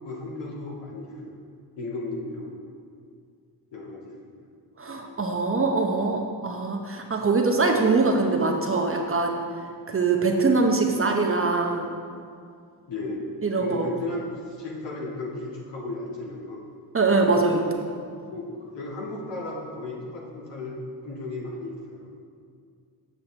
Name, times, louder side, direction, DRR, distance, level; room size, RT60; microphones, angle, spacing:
voice 1, 0.0-1.4 1.8-2.7 3.7-4.3 12.9-13.3 13.6-16.6 17.3-17.7 18.3-18.5 18.7-22.1, left 2 dB, 60° left, -4 dB, 1.9 m, -35 dB
voice 2, 4.8-9.4 9.9-11.9 13.4-13.9 16.9-17.6, right 3 dB, 25° right, 2 dB, 0.8 m, -23 dB
7.3 x 7.0 x 3.3 m, 2.2 s
hypercardioid pair, 50°, 49 cm